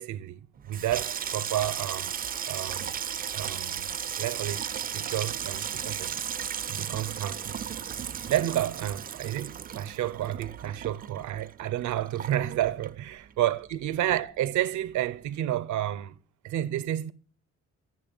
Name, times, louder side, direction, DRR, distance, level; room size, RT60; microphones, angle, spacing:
voice 1, 0.0-2.1 2.4-2.9 3.3-6.2 6.7-7.6 8.3-16.2 16.4-17.1, right 12 dB, 75° right, 0.6 m, -30 dB
Water tap faucet / Sink (filling or washing), 0.6-13.4 13.7-14.4 14.6-15.0, right 8 dB, 30° right, 0.3 m, -35 dB
7.6 x 6.0 x 5.2 m
cardioid pair, 90°, 30 cm